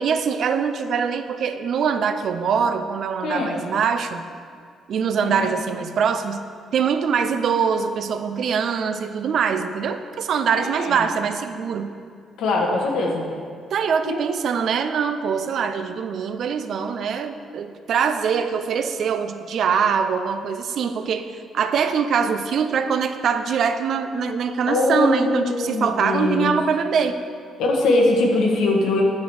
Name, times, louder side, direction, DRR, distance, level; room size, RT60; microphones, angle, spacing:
voice 1, 0.0-4.2 4.9-6.4 6.7-11.9 13.7-21.3 21.5-27.2, right 6 dB, 65° right, 9 dB, 0.5 m, -23 dB
voice 2, 3.2-3.6 5.2-5.5 10.6-11.1 12.4-13.2 14.0-14.2 24.7-26.6 27.6-29.0, left 2 dB, 85° left, 0 dB, 1.4 m, -22 dB
9.4 x 6.0 x 4.8 m, 2.2 s
cardioid pair, 90°, 0 cm